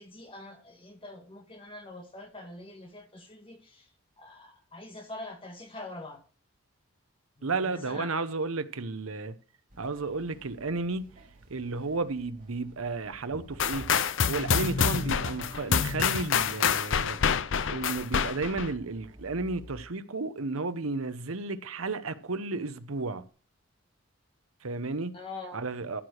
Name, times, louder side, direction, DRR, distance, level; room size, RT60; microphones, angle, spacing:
voice 1, 0.0-3.9 4.2-6.2 7.4-8.1 25.1-25.6, left 2 dB, 25° left, 2.0 m, -44 dB
voice 2, 7.4-9.4 9.8-11.1 11.5-13.9 14.3-17.2 17.7-23.2 24.6-25.1 25.5-26.0, right 3 dB, 80° right, 0.9 m, -33 dB
sound 1, 9.7-19.8, right 2 dB, 40° right, 2.4 m, -51 dB
sound 2, 13.6-18.7, left 7 dB, 60° left, 0.5 m, -27 dB
14.0 x 4.9 x 6.5 m
head